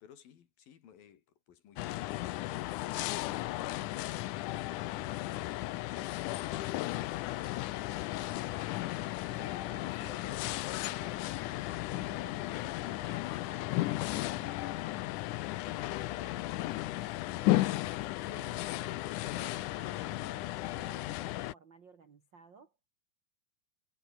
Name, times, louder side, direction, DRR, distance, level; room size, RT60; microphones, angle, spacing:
voice 1, 0.0-8.5, left 9 dB, 65° left, 3.9 m, -59 dB
sound 1, 1.8-21.5, left 17 dB, 90° left, 1.7 m, -35 dB
voice 2, 9.3-15.2 15.6-22.7, right 5 dB, 50° right, 1.3 m, -56 dB
omnidirectional pair, 4.6 m